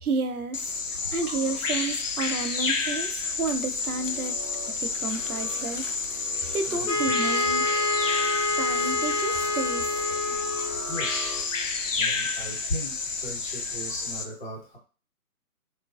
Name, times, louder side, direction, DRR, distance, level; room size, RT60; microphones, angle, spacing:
voice 1, 0.0-4.4 4.7-5.9 6.5-8.0 8.6-9.9, right 3 dB, 75° right, 8 dB, 0.6 m, -31 dB
Bird vocalization bird call bird song, 0.5-14.2, left 4 dB, 60° left, 0.5 m, -30 dB
sound 1, 3.7-11.9, right 1 dB, 15° left, 0.6 m, -44 dB
Wind instrument woodwind instrument, 6.9-10.9, left 2 dB, 85° left, 1.1 m, -27 dB
voice 2, 10.9-11.4 11.9-12.9 13.2-14.8, equal, 35° left, -4 dB, 1.1 m, -36 dB
3.0 x 2.4 x 2.3 m, 0.35 s
figure-of-eight pair, 145°, 45 cm